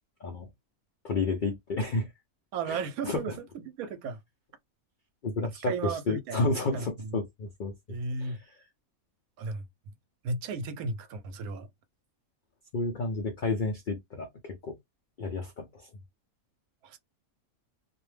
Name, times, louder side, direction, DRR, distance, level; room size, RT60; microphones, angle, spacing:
voice 1, 1.0-2.1 2.7-2.8 3.0-3.2 5.2-7.7 8.2-8.5 12.7-14.8 15.2-15.9, left 3 dB, 75° left, 0.4 m, -31 dB
voice 2, 2.5-3.3 3.7-4.2 5.6-7.2 7.9-8.4 9.4-9.7 10.2-11.7 16.8-17.0, right 4 dB, 85° right, 1.1 m, -34 dB
2.5 x 2.1 x 3.2 m
omnidirectional pair, 1.5 m